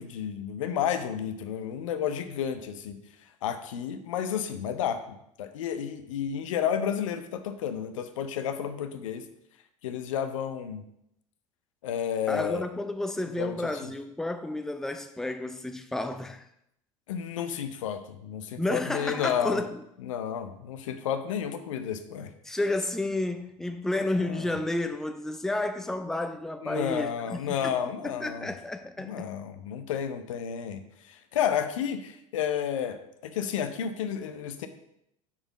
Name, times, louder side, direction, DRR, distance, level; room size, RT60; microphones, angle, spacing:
voice 1, 0.0-3.0 3.4-9.2 9.8-10.8 11.8-12.7 13.4-13.9 17.1-19.6 20.0-22.3 24.2-24.6 26.6-28.5 29.0-34.7, left 8 dB, 70° left, 0.6 m, -31 dB
voice 2, 12.3-16.4 18.6-19.8 22.4-27.8 28.0-29.2, left 2 dB, 5° left, 0.5 m, -31 dB
5.6 x 4.9 x 5.3 m
figure-of-eight pair, 70°, 17 cm